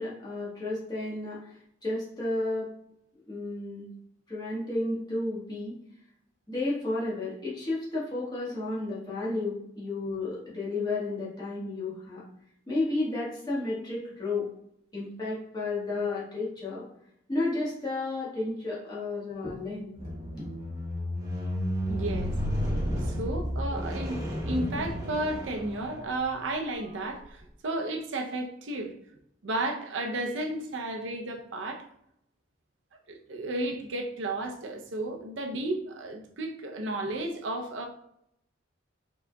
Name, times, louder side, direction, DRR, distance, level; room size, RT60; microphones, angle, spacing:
voice 1, 0.0-1.4 1.8-2.7 3.3-3.9 4.3-5.7 6.5-12.2 12.7-14.5 14.9-16.8 17.3-20.0 20.4-20.5, left 2 dB, 20° left, -7 dB, 1.4 m, -32 dB
Squeak, 20.0-26.3 27.1-27.2, equal, 20° right, 0.9 m, -32 dB
voice 2, 21.9-22.4 23.0-28.9 29.4-31.9 33.1-37.9, right 2 dB, 75° right, 3 dB, 0.6 m, -33 dB
4.8 x 3.7 x 2.3 m, 0.75 s
head